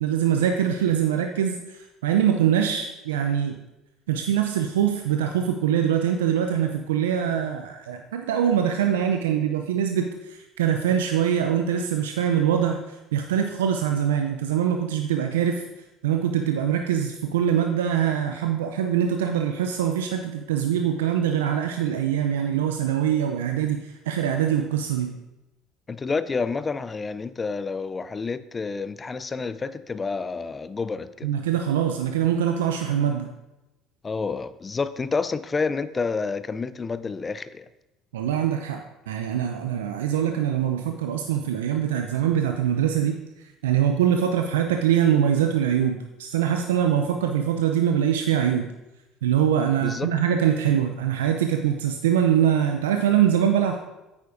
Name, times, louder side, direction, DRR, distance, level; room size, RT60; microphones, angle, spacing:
voice 1, 0.0-3.5 4.1-15.6 16.0-25.2 31.2-33.3 38.1-43.2 43.6-48.7 49.2-53.8, right 9 dB, 80° right, 0.5 m, -23 dB
voice 2, 25.9-31.3 34.0-37.7 49.8-50.1, left 4 dB, 25° left, 0.5 m, -29 dB
9.3 x 8.7 x 2.6 m
hypercardioid pair, 65°, 0 cm